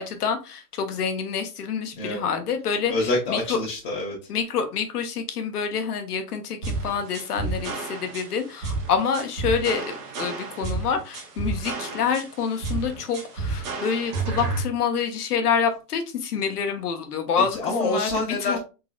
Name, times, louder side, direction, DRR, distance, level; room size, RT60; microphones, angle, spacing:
voice 1, 0.0-2.9 3.3-3.6 4.3-18.1 18.4-18.6, left 6 dB, 75° left, 7 dB, 1.1 m, -27 dB
voice 2, 2.9-4.2 17.5-18.6, left 2 dB, 40° left, -3 dB, 1.1 m, -26 dB
sound 1, 6.6-14.6, right 3 dB, 20° right, 0.4 m, -31 dB
3.7 x 3.1 x 2.3 m, 0.31 s
hypercardioid pair, 135°, 47 cm